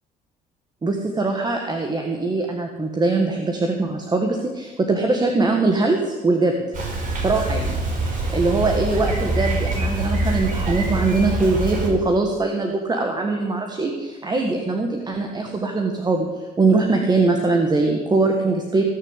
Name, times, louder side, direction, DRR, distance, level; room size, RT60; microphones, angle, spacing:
voice 1, 0.8-6.5 7.2-7.8 8.1-18.8, right 3 dB, 25° right, 3 dB, 1.7 m, -22 dB
Bicycle, 6.7-11.9, right 2 dB, 50° right, 4.8 m, -24 dB
17.5 x 6.5 x 8.3 m, 1.2 s
cardioid pair, 110°, 17 cm